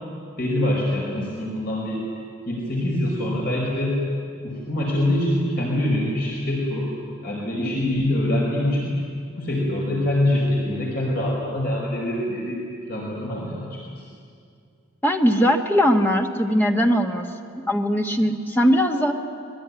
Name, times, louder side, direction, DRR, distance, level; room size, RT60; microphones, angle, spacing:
voice 1, 0.4-2.0 2.5-4.0 4.4-6.9 7.2-9.0 9.4-12.6 12.9-13.8, left 1 dB, 50° left, -3 dB, 5.0 m, -24 dB
voice 2, 15.0-17.2 17.6-19.1, equal, 10° left, 2 dB, 1.7 m, -20 dB
26.0 x 21.5 x 9.7 m, 2.3 s
head